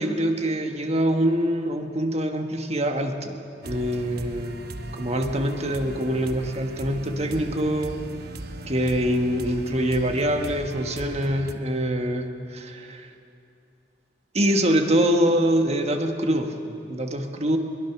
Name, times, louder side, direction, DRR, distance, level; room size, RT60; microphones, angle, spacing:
voice 1, 0.0-4.6 4.9-8.0 8.7-13.1 14.3-17.6, equal, 35° right, 5 dB, 1.5 m, -24 dB
sound 1, 3.6-11.5, right 2 dB, 55° right, 1.0 m, -38 dB
22.5 x 21.5 x 6.0 m, 2.6 s
head